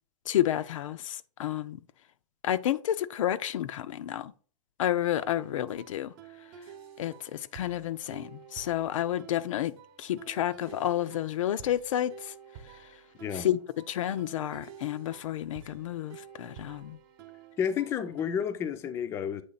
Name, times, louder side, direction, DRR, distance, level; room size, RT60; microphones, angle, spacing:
voice 1, 0.3-1.8 2.4-4.3 4.8-6.1 7.0-12.3 13.3-17.0, left 11 dB, 75° left, 0.5 m, -30 dB
sound 1, 5.0-18.4, right 8 dB, 45° right, 0.8 m, -51 dB
voice 2, 17.6-19.4, left 8 dB, 15° left, 0.4 m, -31 dB
7.8 x 3.1 x 4.0 m
hypercardioid pair, 150°, 17 cm